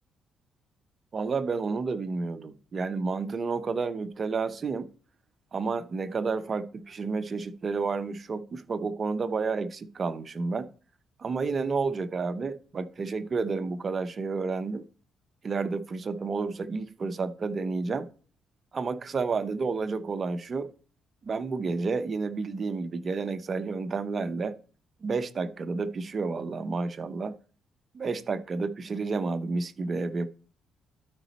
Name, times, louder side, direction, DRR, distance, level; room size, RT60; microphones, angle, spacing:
voice 1, 1.1-4.9 5.5-10.7 11.2-14.8 15.4-18.1 18.7-20.7 21.2-24.6 25.0-27.4 27.9-30.3, right 4 dB, 40° right, 0.7 m, -30 dB
12.0 x 5.0 x 4.2 m
cardioid pair, 90°, 0 cm